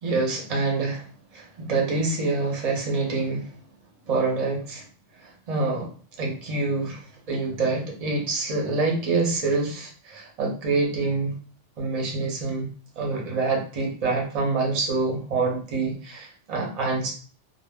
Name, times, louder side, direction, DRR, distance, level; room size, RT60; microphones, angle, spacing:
voice 1, 0.0-1.0 1.3-3.5 4.1-4.8 5.2-5.9 6.2-11.3 11.8-12.7 13.0-17.1, right 3 dB, 40° right, -1 dB, 0.6 m, -26 dB
2.1 x 2.0 x 3.4 m, 0.41 s
omnidirectional pair, 1.3 m